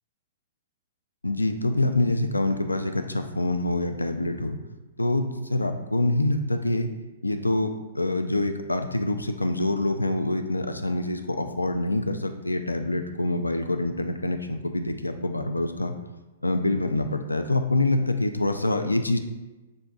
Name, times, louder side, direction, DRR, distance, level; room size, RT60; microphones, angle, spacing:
voice 1, 1.2-4.6 5.0-6.9 7.2-15.9 16.4-19.2, left 2 dB, 85° left, 7 dB, 0.3 m, -26 dB
6.1 x 2.6 x 2.3 m, 1.1 s
figure-of-eight pair, 110°, 0 cm